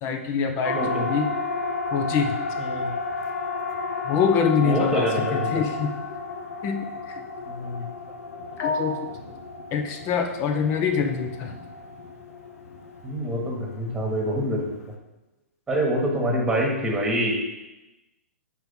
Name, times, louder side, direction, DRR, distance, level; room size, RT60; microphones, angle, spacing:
voice 1, 0.0-1.3 1.9-2.4 4.0-5.9 6.6-6.8 7.1-7.2 8.6-9.0 9.7-11.5, left 6 dB, 30° left, 5 dB, 0.8 m, -24 dB
Siren, 0.6-14.9, left 4 dB, 70° left, 0.9 m, -33 dB
voice 2, 0.7-1.1 2.6-2.9 4.6-5.5 7.4-7.9 13.0-14.7 15.7-17.4, right 1 dB, 10° right, -1 dB, 1.6 m, -26 dB
5.4 x 4.6 x 5.6 m, 1.0 s
hypercardioid pair, 130°, 8 cm